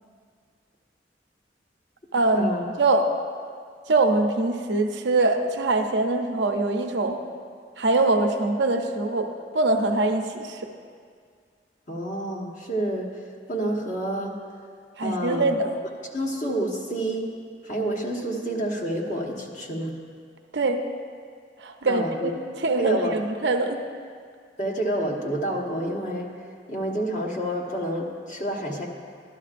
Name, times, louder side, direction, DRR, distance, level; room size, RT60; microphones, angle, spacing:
voice 1, 2.1-2.5 2.8-3.1 3.9-7.2 7.8-10.7 15.0-15.7 20.5-20.8 21.6-22.3 22.6-23.8, right 2 dB, 75° right, 5 dB, 0.7 m, -23 dB
voice 2, 11.9-13.2 13.5-14.4 15.0-15.5 16.1-17.3 17.6-19.9 21.9-22.3 22.8-23.1 24.6-26.3 26.7-28.9, right 1 dB, 45° left, -2 dB, 1.2 m, -28 dB
12.0 x 11.5 x 2.5 m, 2.1 s
head